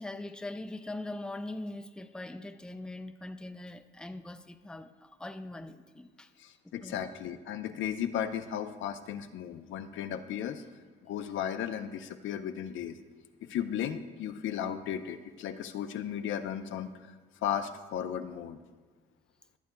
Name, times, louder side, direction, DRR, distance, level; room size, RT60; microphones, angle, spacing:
voice 1, 0.0-6.3 6.8-7.0, left 2 dB, 5° left, 8 dB, 0.5 m, -41 dB
voice 2, 6.4-10.6 11.0-13.0 13.4-16.9 17.4-18.6, left 9 dB, 75° left, 8 dB, 0.6 m, -35 dB
23.5 x 8.2 x 2.2 m, 1.4 s
cardioid pair, 90°, 20 cm